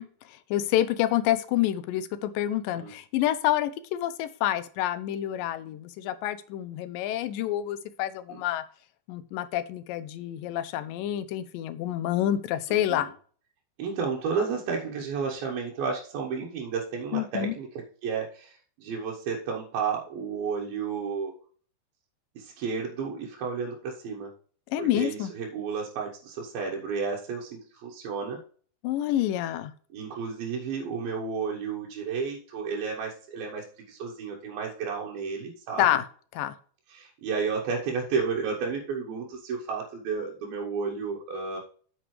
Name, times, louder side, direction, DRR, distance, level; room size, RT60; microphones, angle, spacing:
voice 1, 0.0-8.6 9.1-13.1 17.1-17.5 24.7-25.3 28.8-29.7 35.8-36.0 36.3-36.6, left 12 dB, 80° left, 14 dB, 2.1 m, -28 dB
voice 2, 12.7-13.1 13.8-17.7 18.0-21.3 22.4-24.3 24.8-28.4 29.9-35.9 36.9-41.6, right 5 dB, 80° right, -2 dB, 3.0 m, -32 dB
8.9 x 6.8 x 3.2 m, 0.44 s
omnidirectional pair, 4.3 m